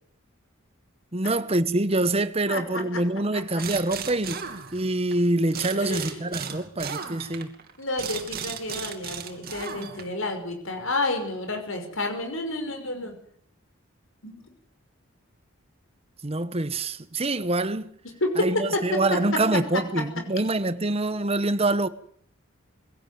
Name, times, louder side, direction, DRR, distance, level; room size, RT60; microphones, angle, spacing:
voice 1, 1.1-4.4 4.7-7.5 16.2-17.9 18.4-21.9, right 2 dB, 30° right, 1.1 m, -25 dB
voice 2, 2.5-3.0 5.8-6.2 7.8-13.2 14.2-14.4 18.0-20.0, left 2 dB, 75° left, 5.9 m, -30 dB
sound 1, 3.6-5.1 5.5-10.2, right 7 dB, 45° right, 2.8 m, -36 dB
23.0 x 17.0 x 9.4 m
head